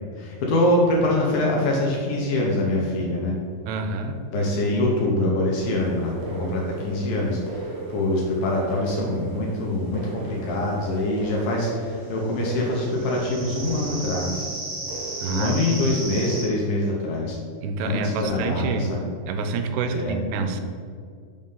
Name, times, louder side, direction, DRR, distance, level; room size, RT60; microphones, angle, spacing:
voice 1, 0.2-3.3 4.3-14.5 15.3-17.4 17.8-18.6 18.9-19.0 19.9-20.2, left 1 dB, 75° left, -2 dB, 2.3 m, -24 dB
voice 2, 3.7-4.2 15.2-16.0 17.5-19.0 19.3-20.6, right 4 dB, 85° right, 7 dB, 2.6 m, -28 dB
sound 1, 5.5-16.4, right 2 dB, 65° right, 2.8 m, -35 dB
sound 2, 13.1-14.4, left 3 dB, 90° left, 3.0 m, -38 dB
6.3 x 3.7 x 5.5 m, 2.1 s
omnidirectional pair, 4.7 m